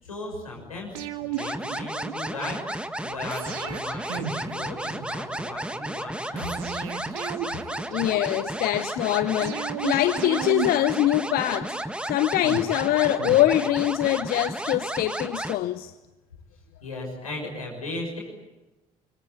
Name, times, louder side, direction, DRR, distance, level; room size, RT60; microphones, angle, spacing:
voice 1, 0.0-6.6 16.8-18.2, left 2 dB, 90° left, 6.5 m, -37 dB
sound 1, 0.9-2.5 3.3-5.4 6.4-8.6 9.4-11.8 12.4-14.1 14.4-14.5, right 9 dB, 70° right, 1.9 m, -35 dB
sound 2, 1.4-15.6, right 1 dB, 5° right, 1.6 m, -33 dB
voice 2, 7.9-15.9, left 14 dB, 55° left, 0.8 m, -24 dB
25.0 x 23.0 x 8.8 m
figure-of-eight pair, 55°, 18 cm